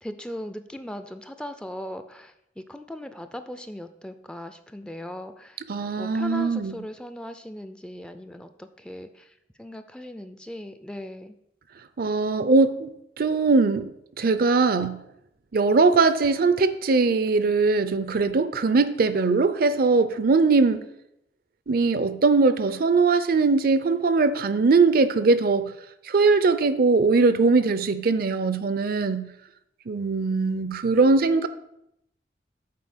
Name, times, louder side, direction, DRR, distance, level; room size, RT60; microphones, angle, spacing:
voice 1, 0.0-5.6 6.0-11.4, left 1 dB, 5° left, 9 dB, 0.4 m, -38 dB
voice 2, 5.7-6.8 12.0-12.9 13.2-13.9 14.2-15.0 15.5-20.8 21.7-25.7 26.1-29.3 29.9-31.5, right 4 dB, 55° right, 12 dB, 0.5 m, -21 dB
7.6 x 4.5 x 7.1 m, 0.80 s
head